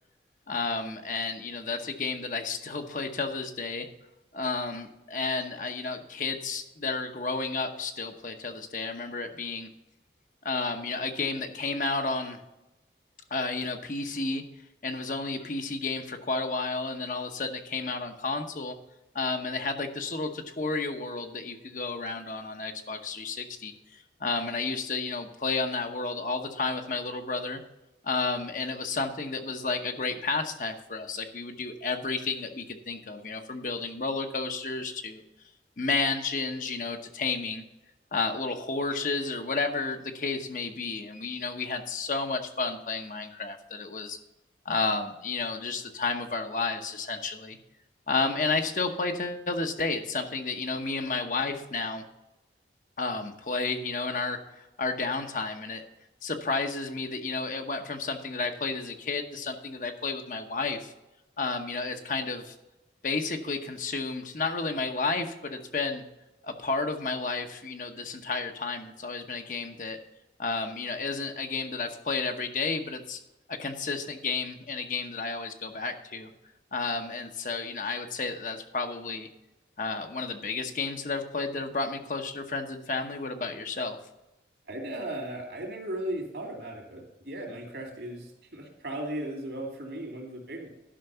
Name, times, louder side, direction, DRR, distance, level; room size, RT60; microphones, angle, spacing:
voice 1, 0.5-3.9 4.3-9.7 10.4-12.4 13.3-14.4 14.8-18.8 19.1-27.6 28.0-35.2 35.8-37.6 38.1-44.2 44.6-47.6 48.1-52.0 53.0-55.8 56.2-60.9 61.4-62.5 63.0-66.0 66.4-70.0 70.4-73.2 73.5-76.3 76.7-79.3 79.8-84.0, left 3 dB, 45° left, 6 dB, 0.9 m, -31 dB
voice 2, 84.7-90.7, right 1 dB, 70° right, 2 dB, 2.8 m, -36 dB
11.5 x 5.9 x 5.6 m, 0.98 s
head